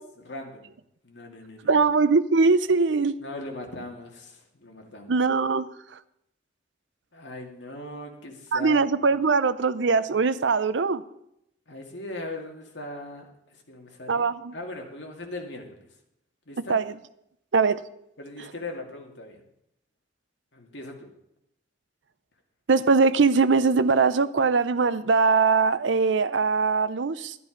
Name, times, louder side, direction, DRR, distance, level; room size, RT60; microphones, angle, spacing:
voice 1, 0.3-0.7 1.0-1.7 3.2-5.1 7.1-8.8 11.7-14.3 14.5-15.9 16.5-16.8 18.2-19.4 20.5-21.1, left 1 dB, 75° left, 2 dB, 2.3 m, -39 dB
voice 2, 1.6-3.2 5.1-5.7 8.5-11.0 14.1-14.5 16.6-16.9 17.5-17.8 18.4-18.5 22.7-27.4, right 4 dB, 80° right, 14 dB, 0.6 m, -21 dB
12.0 x 11.0 x 5.2 m, 0.79 s
head